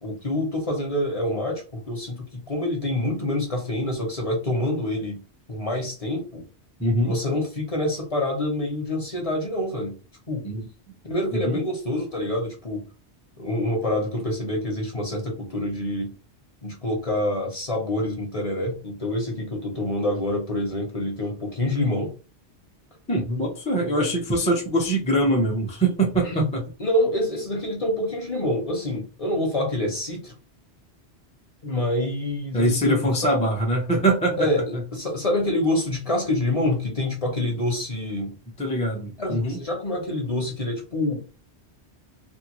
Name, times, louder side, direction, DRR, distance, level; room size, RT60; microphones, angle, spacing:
voice 1, 0.0-6.4 7.0-10.0 10.3-10.4 11.0-12.9 13.4-16.1 16.6-22.1 24.0-24.1 26.2-26.5 26.8-30.3 31.6-33.0 34.4-38.4 39.2-41.4, left 1 dB, 35° left, 0.9 m, -26 dB
voice 2, 6.8-7.1 10.4-10.7 11.4-11.6 23.1-26.6 32.5-34.4 38.6-39.6, right 1 dB, 10° left, 0.5 m, -23 dB
2.6 x 2.4 x 2.9 m
omnidirectional pair, 1.1 m